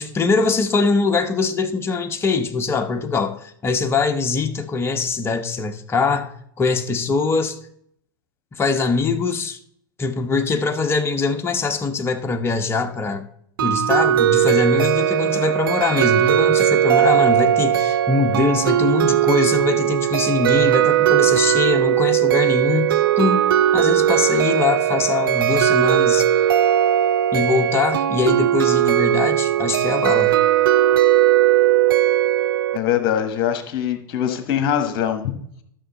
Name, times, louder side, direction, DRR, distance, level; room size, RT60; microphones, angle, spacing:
voice 1, 0.0-7.6 8.5-9.6 10.0-13.3 13.6-23.5 23.7-26.3 27.3-30.3, left 4 dB, 20° left, 1.0 m, -22 dB
sound 1, 13.6-32.8, right 11 dB, 75° right, 0.4 m, -18 dB
voice 2, 32.7-35.3, left 9 dB, 45° left, 1.6 m, -22 dB
12.5 x 6.3 x 4.1 m
hypercardioid pair, 95°, 12 cm